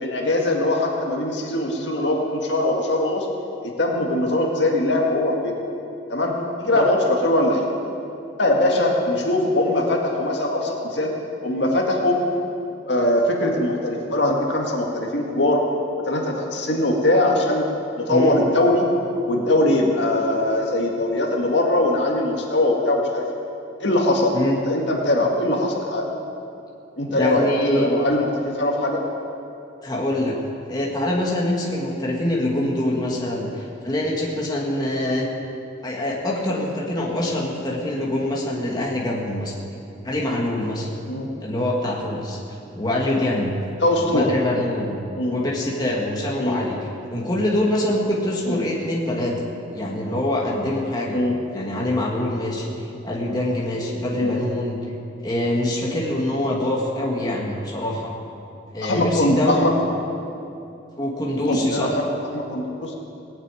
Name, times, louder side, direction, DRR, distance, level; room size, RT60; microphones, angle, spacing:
voice 1, 0.0-3.3 3.6-5.5 6.1-7.7 8.4-11.1 11.4-12.2 12.9-15.6 16.1-17.7 18.0-18.9 19.3-23.2 23.8-26.1 27.0-29.0 41.1-41.3 43.8-44.3 45.2-45.4 46.4-46.6 48.5-48.6 51.1-51.3 54.2-54.3 58.8-59.7 61.4-62.9, left 1 dB, 65° left, 0 dB, 2.0 m, -21 dB
voice 2, 27.1-27.9 29.8-30.4 30.7-35.3 35.8-39.5 40.0-40.9 41.4-43.6 44.1-45.0 45.3-46.8 47.1-49.4 49.7-51.2 51.5-52.7 53.0-54.8 55.2-58.1 58.7-59.7 61.0-61.9, left 1 dB, 20° left, -3 dB, 2.1 m, -24 dB
18.5 x 8.3 x 9.1 m, 2.7 s
head